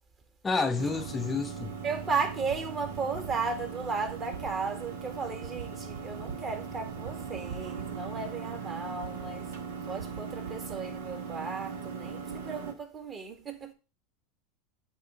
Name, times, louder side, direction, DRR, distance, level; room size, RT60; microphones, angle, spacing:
voice 1, 0.4-1.8, left 4 dB, 20° left, 0.6 m, -29 dB
sound 1, 0.8-12.7, right 6 dB, 85° right, 1.6 m, -39 dB
voice 2, 1.8-9.5 9.8-13.7, right 4 dB, 30° right, 1.8 m, -35 dB
8.4 x 3.2 x 4.9 m
hypercardioid pair, 105°, 0 cm